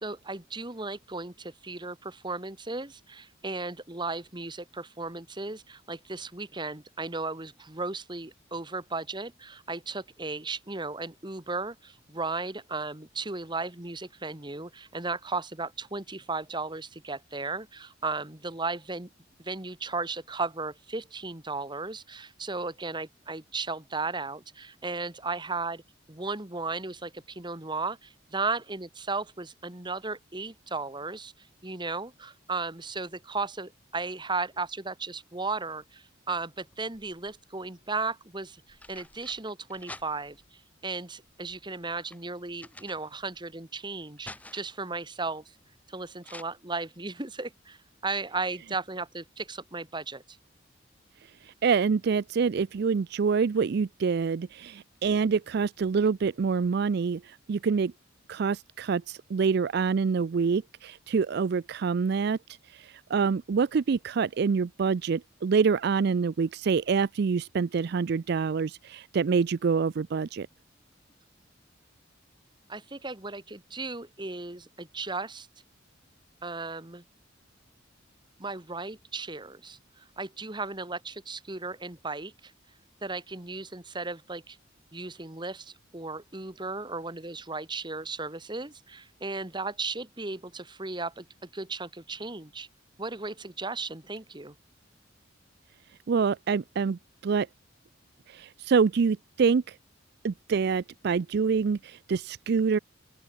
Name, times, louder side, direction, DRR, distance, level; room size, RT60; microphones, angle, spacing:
voice 1, 0.0-19.1 19.4-25.8 26.1-31.3 31.6-40.4 40.8-45.4 45.9-47.8 48.0-50.4 72.7-75.5 76.4-77.0 78.4-82.5 83.0-84.6 84.9-92.7 93.0-94.6, right 3 dB, 25° right, 1.9 m, -35 dB
sound 1, 36.7-37.5 38.4-40.5 41.2-43.5 43.8-44.9 46.2-46.4, left 2 dB, 10° left, 4.6 m, -49 dB
voice 2, 51.4-57.9 58.3-62.4 62.7-70.5 96.1-97.5 98.3-99.8 100.2-102.8, right 5 dB, 55° right, 0.4 m, -26 dB
open air
head